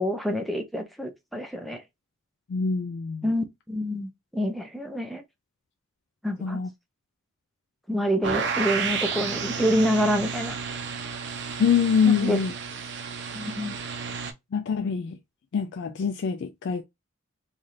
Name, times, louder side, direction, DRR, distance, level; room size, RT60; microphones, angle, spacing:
voice 1, 0.0-1.8 3.2-5.2 6.2-6.6 7.9-10.6 12.0-12.4 13.3-13.8, equal, ahead, 0.5 m, -27 dB
voice 2, 2.5-3.3 6.4-6.7 11.6-12.5 14.5-15.2 15.5-16.8, left 6 dB, 55° left, 0.3 m, -24 dB
sound 1, 8.2-14.3, right 5 dB, 55° right, 0.6 m, -32 dB
3.3 x 2.4 x 4.0 m
head